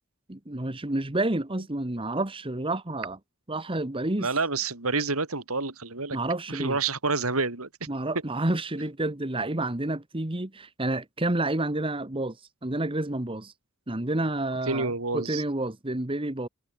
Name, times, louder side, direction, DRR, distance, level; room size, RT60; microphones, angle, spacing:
voice 1, 0.3-3.2 3.5-4.3 6.1-6.8 7.9-12.4 12.6-13.5 13.9-16.5, right 2 dB, 25° right, 1.4 m, -29 dB
voice 2, 4.2-6.2 6.5-7.7 14.7-15.4, right 3 dB, 85° right, 3.6 m, -28 dB
head